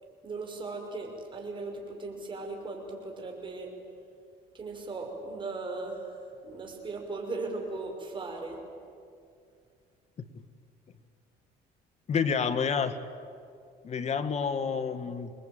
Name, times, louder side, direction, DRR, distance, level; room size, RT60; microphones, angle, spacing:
voice 1, 0.2-3.7 4.5-6.2 6.4-8.6, right 3 dB, 30° right, 1 dB, 6.0 m, -38 dB
voice 2, 12.1-13.0 13.8-15.3, left 6 dB, 40° left, 10 dB, 1.8 m, -29 dB
27.0 x 20.5 x 9.2 m, 2.4 s
cardioid pair, 110°, 17 cm